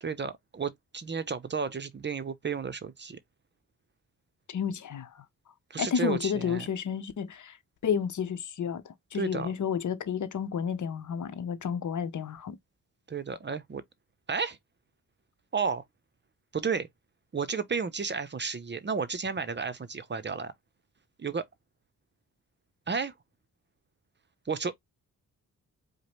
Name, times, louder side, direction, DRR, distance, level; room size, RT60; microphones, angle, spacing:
voice 1, 0.0-3.2 5.7-6.7 9.1-9.5 13.1-13.8 14.3-14.6 15.5-15.8 16.5-16.9 17.3-20.5 21.2-21.5 22.9-23.1 24.5-24.7, right 5 dB, 30° right, 0.6 m, -32 dB
voice 2, 4.5-5.2 5.8-7.6 7.8-12.6, left 7 dB, 55° left, 0.8 m, -31 dB
4.9 x 2.1 x 3.0 m
cardioid pair, 65°, 35 cm